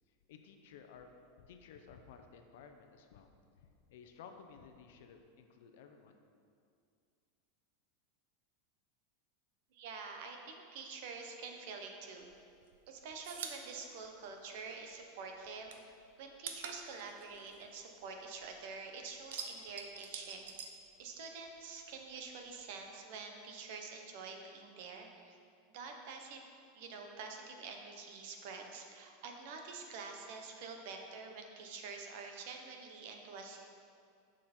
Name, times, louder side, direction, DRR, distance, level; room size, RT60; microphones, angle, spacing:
voice 1, 0.3-1.1 1.4-3.3 3.6-6.2, left 6 dB, 60° left, 5 dB, 0.8 m, -55 dB
voice 2, 9.7-12.3 12.9-15.7 16.2-20.5 21.0-25.4 25.7-26.4 26.7-33.7, right 4 dB, 50° right, 3 dB, 1.0 m, -47 dB
sound 1, 12.2-15.0 15.3-18.6 18.9-21.5 21.8-22.9, right 6 dB, 80° right, 0.9 m, -47 dB
9.9 x 6.5 x 4.4 m, 2.4 s
supercardioid pair, 180°, 0 cm